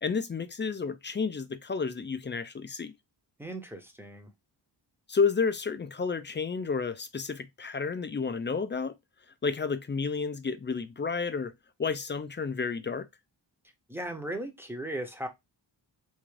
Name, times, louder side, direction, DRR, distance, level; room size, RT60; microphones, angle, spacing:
voice 1, 0.0-2.9 5.1-9.0 9.4-11.5 11.8-13.1, left 5 dB, 25° left, 0.3 m, -31 dB
voice 2, 3.4-4.3 13.9-15.3, right 1 dB, 5° right, 0.7 m, -37 dB
3.6 x 2.5 x 3.1 m
wide cardioid pair, 125°, 45 cm